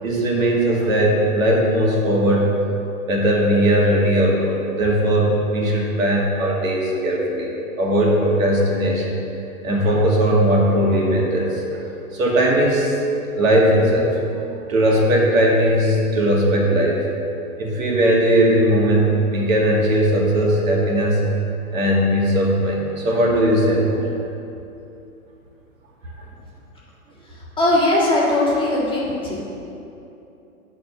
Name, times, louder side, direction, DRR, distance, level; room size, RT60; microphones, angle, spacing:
voice 1, 0.0-2.5 3.1-7.5 7.8-9.1 9.6-11.6 12.1-13.0 13.4-14.2 14.7-17.0 17.6-21.2 21.7-24.0, equal, 60° right, -3 dB, 2.3 m, -18 dB
voice 2, 27.6-29.4, left 1 dB, 10° left, -7 dB, 1.9 m, -19 dB
11.0 x 4.3 x 7.0 m, 2.8 s
hypercardioid pair, 125°, 44 cm